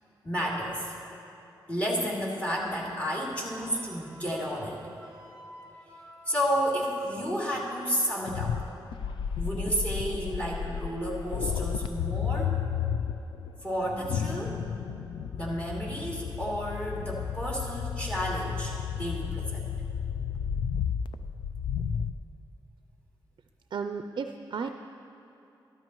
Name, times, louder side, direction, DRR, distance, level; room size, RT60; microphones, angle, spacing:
voice 1, 0.2-0.9 1.7-4.8 6.3-8.6 9.4-12.6 13.6-14.6 15.3-19.7, equal, 15° left, -3 dB, 2.7 m, -31 dB
Wind instrument woodwind instrument, 3.3-7.5, right 1 dB, 35° left, 2.7 m, -52 dB
sound 1, 8.3-22.1, left 7 dB, 85° left, 0.4 m, -32 dB
voice 2, 23.7-24.7, right 5 dB, 60° right, 7 dB, 0.4 m, -33 dB
13.0 x 12.5 x 3.1 m, 3.0 s
cardioid pair, 75°, 8 cm